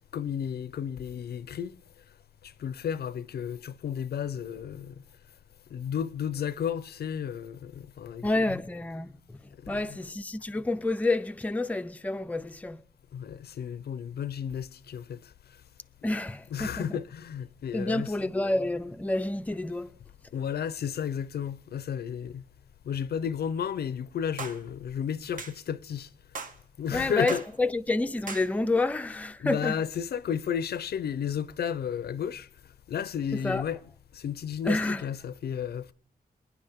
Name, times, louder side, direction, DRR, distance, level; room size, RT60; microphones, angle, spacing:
voice 1, 0.1-1.8 2.6-4.9 5.7-8.6 9.6-10.0 13.1-15.2 16.0-16.1 16.5-18.3 20.3-22.4 22.9-26.1 26.8-27.4 29.4-32.5 32.9-33.8 34.1-35.9, left 8 dB, 85° left, 0.6 m, -33 dB
voice 2, 8.2-9.1 9.7-12.8 16.0-17.0 17.7-19.9 26.9-29.8 33.4-33.6 34.7-35.0, left 2 dB, 10° left, 0.4 m, -29 dB
sound 1, 24.4-24.6 25.4-25.6 26.3-26.6 27.3-27.5 28.3-28.5, right 4 dB, 60° right, 1.1 m, -38 dB
25.5 x 10.0 x 3.5 m
wide cardioid pair, 150°, 16 cm